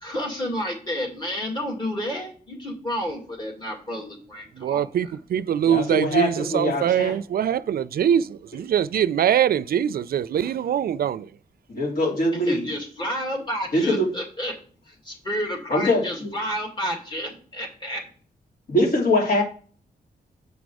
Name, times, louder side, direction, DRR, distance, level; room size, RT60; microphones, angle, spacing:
voice 1, 0.0-4.9 12.3-14.6 14.9-18.0, equal, 30° left, 2.2 m, -30 dB
voice 2, 4.6-11.3, right 9 dB, 70° right, 0.4 m, -23 dB
voice 3, 5.7-7.1 11.7-12.6 13.7-14.1 15.7-16.3 18.7-19.4, left 1 dB, 65° left, 3.1 m, -22 dB
8.1 x 5.2 x 4.7 m
wide cardioid pair, 165°, 16 cm